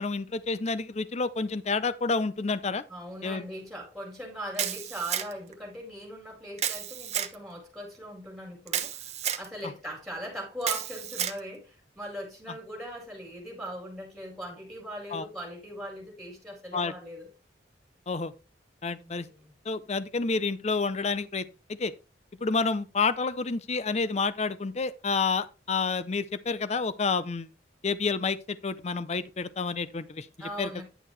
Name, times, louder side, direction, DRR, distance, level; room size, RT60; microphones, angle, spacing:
voice 1, 0.0-2.8 3.2-3.4 9.6-9.7 15.1-15.3 16.7-16.9 18.1-18.3 18.8-19.3 19.7-21.9 22.4-27.5 27.8-30.3 30.6-30.8, left 4 dB, 40° left, 0.5 m, -29 dB
voice 2, 2.9-17.3 19.0-19.5 30.4-30.8, equal, ahead, 4.3 m, -40 dB
Camera, 4.6-5.5 6.6-7.3 8.7-9.5 10.6-11.4, right 10 dB, 40° right, 0.9 m, -31 dB
10.0 x 6.6 x 3.2 m
head